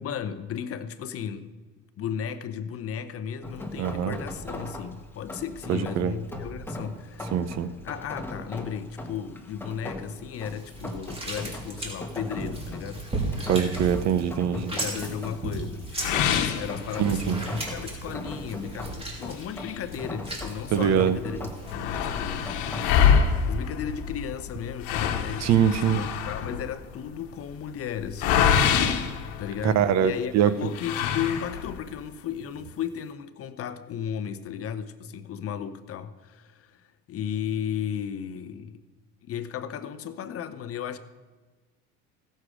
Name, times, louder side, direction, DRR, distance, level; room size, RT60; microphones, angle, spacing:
voice 1, 0.0-1.5 2.0-7.5 7.8-13.1 14.5-21.4 21.7-22.5 23.5-28.5 29.4-30.3 30.6-38.8 39.2-41.0, left 8 dB, 40° left, 0.8 m, -35 dB
Rain, 3.4-23.2, left 1 dB, 5° left, 1.5 m, -39 dB
voice 2, 3.8-4.1 5.7-6.1 7.3-7.7 13.5-14.7 17.0-17.4 20.7-21.2 25.4-26.0 29.6-30.5, right 8 dB, 50° right, 0.8 m, -23 dB
sound 1, 10.3-21.7, right 2 dB, 15° right, 3.0 m, -36 dB
sound 2, 16.0-17.4 17.9-18.0 18.4-18.5 19.3-20.6 21.0-21.1 21.3-30.0 30.7-31.9, left 7 dB, 80° left, 1.2 m, -26 dB
16.5 x 6.6 x 4.9 m
supercardioid pair, 105°, 34 cm